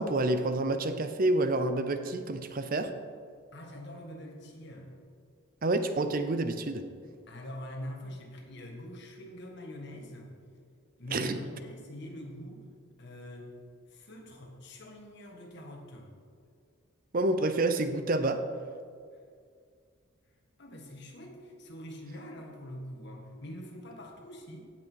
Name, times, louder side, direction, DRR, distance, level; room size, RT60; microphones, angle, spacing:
voice 1, 0.0-2.9 5.6-6.9 11.1-11.4 17.1-18.4, right 2 dB, 40° right, 9 dB, 0.6 m, -28 dB
voice 2, 3.5-4.9 7.3-10.3 11.0-12.6 13.0-13.5 13.9-16.1 20.6-24.6, equal, 55° left, 1 dB, 1.8 m, -44 dB
16.5 x 6.1 x 4.7 m, 2.1 s
head